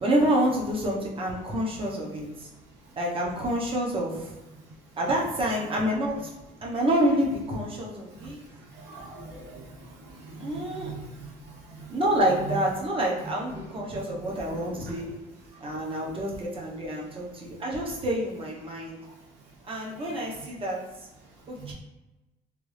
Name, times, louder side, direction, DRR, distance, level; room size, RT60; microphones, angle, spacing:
voice 1, 0.0-2.5 3.0-4.3 5.0-6.3 6.6-8.4 10.4-10.9 11.9-15.1 15.6-19.0 19.7-20.8 21.5-21.7, right 1 dB, 30° right, -3 dB, 1.0 m, -28 dB
voice 2, 8.7-11.9 14.5-14.6 21.6-21.7, right 3 dB, 85° right, -6 dB, 0.9 m, -43 dB
3.5 x 2.6 x 3.2 m, 1.1 s
cardioid pair, 110°, 17 cm